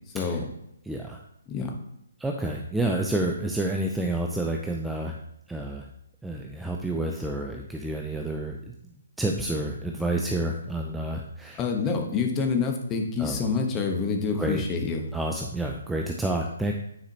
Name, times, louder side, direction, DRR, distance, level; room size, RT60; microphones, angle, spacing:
voice 1, 0.1-0.5 1.5-1.7 11.6-15.0, left 5 dB, 20° left, 3 dB, 1.1 m, -27 dB
voice 2, 0.8-1.2 2.2-5.2 5.5-5.9 6.2-8.7 9.2-11.6 13.2-13.4 14.4-14.6 15.1-16.7, right 1 dB, 5° right, 1 dB, 0.5 m, -29 dB
9.4 x 4.8 x 2.9 m, 0.78 s
figure-of-eight pair, 140°, 0 cm